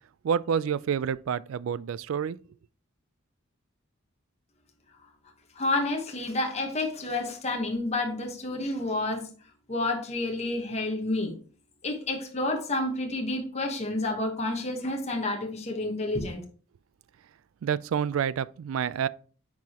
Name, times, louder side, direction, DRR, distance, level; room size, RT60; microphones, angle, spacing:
voice 1, 0.2-2.4 17.6-19.1, right 7 dB, 90° right, 0.3 m, -28 dB
voice 2, 5.6-9.3 9.7-11.3 11.8-16.4, left 2 dB, 35° left, 1.1 m, -29 dB
9.2 x 4.9 x 2.9 m
head